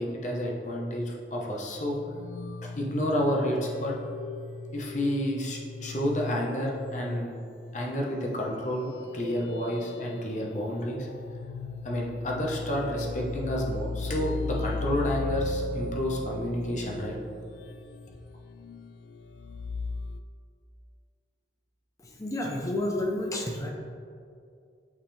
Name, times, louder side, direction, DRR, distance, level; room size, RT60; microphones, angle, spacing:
voice 1, 0.0-2.0 2.6-4.0 4.7-7.4 7.7-11.1 11.8-17.1, equal, 40° left, -2 dB, 0.8 m, -30 dB
sound 1, 1.6-20.2, left 3 dB, 85° left, 0.3 m, -37 dB
voice 2, 22.0-23.7, left 1 dB, 20° left, 1 dB, 0.5 m, -30 dB
8.0 x 3.5 x 3.4 m, 2.4 s
head